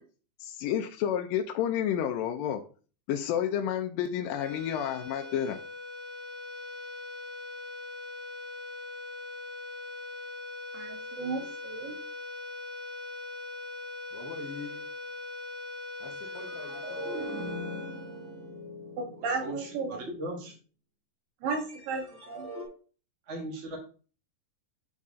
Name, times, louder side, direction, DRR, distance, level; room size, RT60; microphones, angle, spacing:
voice 1, 0.4-2.6 3.1-5.6, left 9 dB, 85° left, 2.2 m, -30 dB
sound 1, 4.2-18.8, left 2 dB, 50° left, 2.1 m, -41 dB
voice 2, 10.7-12.0 19.0-20.0 21.4-22.5, right 4 dB, 80° right, 3.1 m, -34 dB
voice 3, 14.1-14.9 16.0-17.3, left 4 dB, 65° left, 1.4 m, -43 dB
sound 2, 16.3-20.5 21.5-22.6, equal, 30° right, 1.7 m, -41 dB
voice 4, 19.3-20.5 23.3-23.8, right 1 dB, 50° right, 0.8 m, -38 dB
8.6 x 4.1 x 3.6 m
omnidirectional pair, 3.9 m